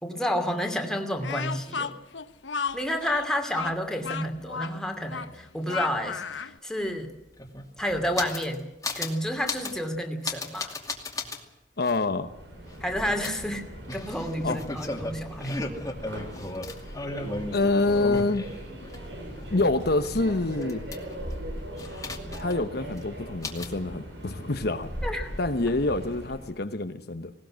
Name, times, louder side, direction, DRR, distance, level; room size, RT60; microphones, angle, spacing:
voice 1, 0.0-2.0 2.7-7.1 7.8-8.7 8.9-10.7 12.8-13.6 13.9-15.5 25.0-25.3, equal, 5° left, 4 dB, 2.7 m, -30 dB
Speech, 1.2-6.6, left 6 dB, 85° left, 1.1 m, -34 dB
sound 1, 6.9-7.0 7.2-8.6 8.8-9.2 9.5-9.8 10.2-11.4 11.9-12.0 13.2-19.0 19.3-21.3 21.8-22.7 22.9-23.0 23.4-23.8, left 2 dB, 20° left, 2.4 m, -35 dB
voice 2, 11.8-12.3 14.4-14.6 16.0-16.1 17.5-18.5 19.5-20.9 22.4-24.9 25.4-27.3, left 2 dB, 60° left, 8 dB, 1.1 m, -26 dB
Subway metro underground, 12.1-26.5, equal, 75° right, 7.5 m, -39 dB
19.5 x 18.5 x 7.6 m, 0.93 s
head